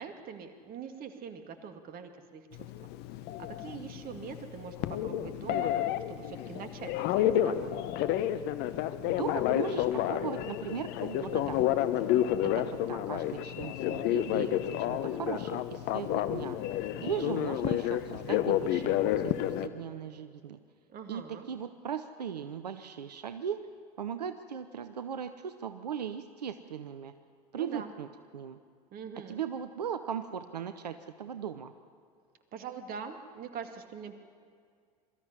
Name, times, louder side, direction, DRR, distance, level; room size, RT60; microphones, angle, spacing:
voice 1, 0.0-2.9 3.4-7.8 20.9-21.5 27.5-27.9 28.9-29.4 32.5-34.1, right 7 dB, 45° right, 7 dB, 2.2 m, -43 dB
Telephone, 2.5-19.7, left 12 dB, 55° left, 1.0 m, -30 dB
voice 2, 9.0-12.1 12.4-14.6 14.9-16.6 17.0-20.6 21.1-23.7 24.0-27.1 27.5-28.1 28.3-28.6 29.2-31.7, right 8 dB, 90° right, 11 dB, 0.7 m, -38 dB
23.0 x 14.0 x 9.6 m, 2.1 s
hypercardioid pair, 75°, 20 cm